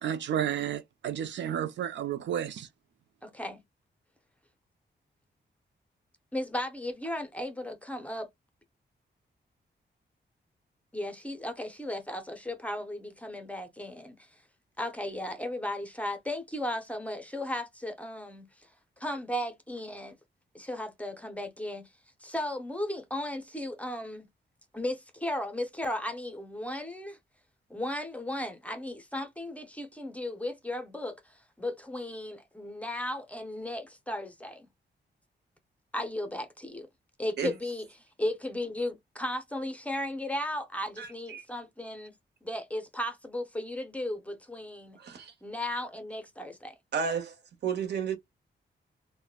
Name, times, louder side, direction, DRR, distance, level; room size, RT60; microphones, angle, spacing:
voice 1, 0.0-2.7, right 9 dB, 85° right, 0.4 m, -32 dB
voice 2, 3.2-3.6 6.3-8.3 10.9-14.3 14.8-18.7 19.0-20.2 20.5-21.9 22.2-24.3 24.7-27.2 27.7-34.7 35.9-36.9 37.2-37.9 38.2-42.1 42.4-45.0 45.4-46.7, left 1 dB, 5° left, 0.5 m, -35 dB
voice 3, 41.0-41.4 45.0-45.3 46.9-47.3 47.6-48.2, right 6 dB, 70° right, 0.8 m, -32 dB
3.5 x 2.1 x 2.3 m
wide cardioid pair, 160°, 18 cm